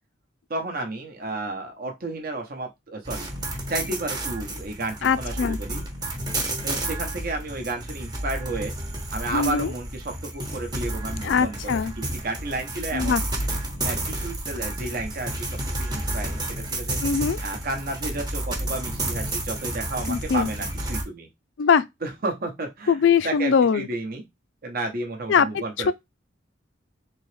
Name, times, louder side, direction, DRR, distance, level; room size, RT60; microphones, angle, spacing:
voice 1, 0.5-3.3 3.7-5.9 6.6-8.8 9.1-13.2 13.8-17.0 17.4-21.3 22.0-23.0 23.2-24.2 24.6-25.9, right 2 dB, 55° right, 0.8 m, -32 dB
sound 1, 3.0-21.0, right 1 dB, 20° right, 0.9 m, -31 dB
voice 2, 5.0-5.6 9.3-9.7 11.2-11.9 12.9-13.2 17.0-17.4 20.1-20.5 21.6-21.8 22.9-23.9 25.3-25.9, left 6 dB, 75° left, 0.4 m, -21 dB
3.9 x 2.9 x 3.2 m
head